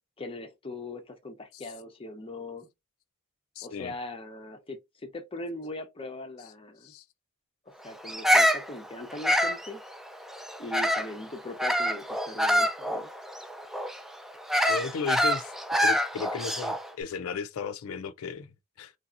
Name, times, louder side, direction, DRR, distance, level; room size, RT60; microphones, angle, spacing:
voice 1, 0.2-2.7 3.6-6.9 7.8-9.8 10.6-13.1, left 2 dB, 25° left, 0.7 m, -40 dB
voice 2, 3.6-3.9 6.8-7.0 14.7-15.5 15.8-18.9, left 5 dB, 75° left, 0.4 m, -35 dB
Bird vocalization bird call bird song, 8.1-11.2 11.6-16.9, equal, ahead, 0.3 m, -26 dB
3.3 x 2.7 x 2.4 m
head